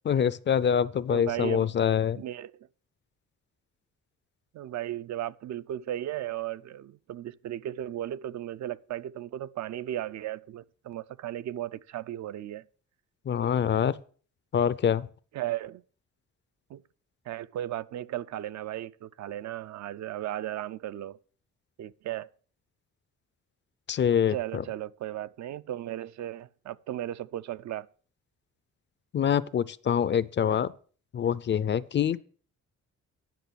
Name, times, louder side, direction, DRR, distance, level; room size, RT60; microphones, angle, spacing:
voice 1, 0.1-2.2 13.3-14.0 14.5-15.1 23.9-24.6 29.1-30.7 31.1-32.2, left 8 dB, 40° left, 0.4 m, -25 dB
voice 2, 1.1-1.7 2.2-2.7 4.5-12.6 13.7-13.8 15.3-15.8 16.7-16.8 17.3-21.2 21.8-22.3 24.3-27.9, right 12 dB, 65° right, 0.5 m, -36 dB
10.5 x 6.1 x 6.9 m
wide cardioid pair, 160°, 30 cm